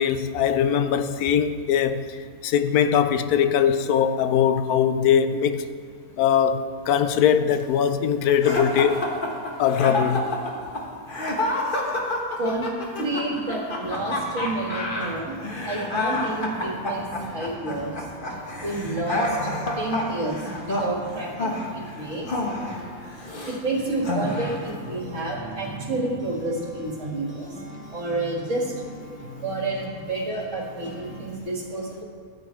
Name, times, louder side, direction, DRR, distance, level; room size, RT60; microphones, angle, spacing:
voice 1, 0.0-2.0 2.4-5.6 6.2-9.1 9.6-10.3, left 8 dB, 85° left, 1.1 m, -21 dB
sound 1, 8.4-23.6 24.0-24.7, left 1 dB, 35° left, 1.4 m, -29 dB
voice 2, 12.4-15.3 15.7-17.9 18.6-19.3 19.8-21.6 22.0-22.3 23.5-27.5 27.9-28.6 29.4-32.0, right 2 dB, 55° right, 2.1 m, -29 dB
sound 2, 13.9-31.4, right 1 dB, 5° right, 2.0 m, -41 dB
14.5 x 8.3 x 4.5 m
omnidirectional pair, 1.6 m